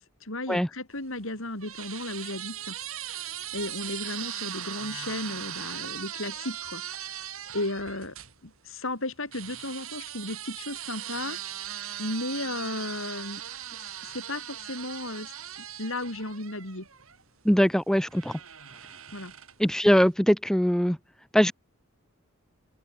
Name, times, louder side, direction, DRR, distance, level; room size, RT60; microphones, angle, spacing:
voice 1, 0.2-7.2 7.5-8.2 8.4-11.4 12.0-13.4 14.0-15.3 15.6-16.9 19.1-19.3, left 2 dB, 65° left, 7.6 m, -35 dB
sound 1, 1.0-8.3 9.3-17.2 18.1-19.7, right 11 dB, 75° right, 4.6 m, -39 dB
voice 2, 17.4-18.3 19.6-21.0 21.3-21.5, equal, 5° left, 0.9 m, -21 dB
open air
head